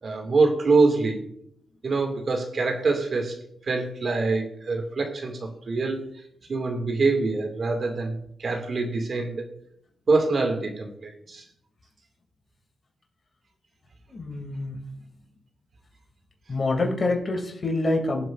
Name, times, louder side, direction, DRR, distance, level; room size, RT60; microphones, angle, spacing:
voice 1, 0.0-1.3 1.8-3.3 3.6-6.0 6.5-9.4 10.1-11.4, right 3 dB, 50° right, 4 dB, 2.3 m, -25 dB
voice 2, 14.1-14.8 16.5-18.3, left 2 dB, 40° left, 3 dB, 2.7 m, -26 dB
21.5 x 7.6 x 2.6 m, 0.70 s
supercardioid pair, 55°, 0 cm